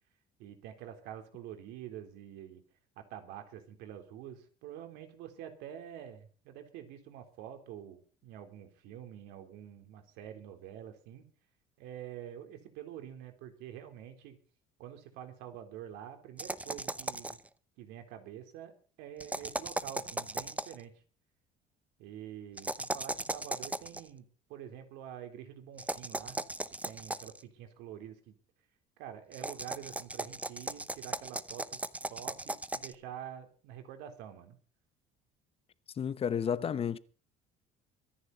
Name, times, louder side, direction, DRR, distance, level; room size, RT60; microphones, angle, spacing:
voice 1, 0.4-2.6 3.0-11.2 11.8-14.4 14.8-17.4 17.8-18.7 19.0-20.9 22.0-26.4 26.8-28.4 29.0-31.8 32.1-34.6, right 10 dB, 80° right, 3.6 m, -47 dB
sound 1, 16.4-17.5 19.2-20.8 22.6-24.0 25.8-27.4 29.3-32.9, right 2 dB, 10° right, 0.8 m, -37 dB
voice 2, 36.0-37.0, left 8 dB, 35° left, 0.9 m, -31 dB
24.5 x 10.5 x 4.1 m
cardioid pair, 115°, 17 cm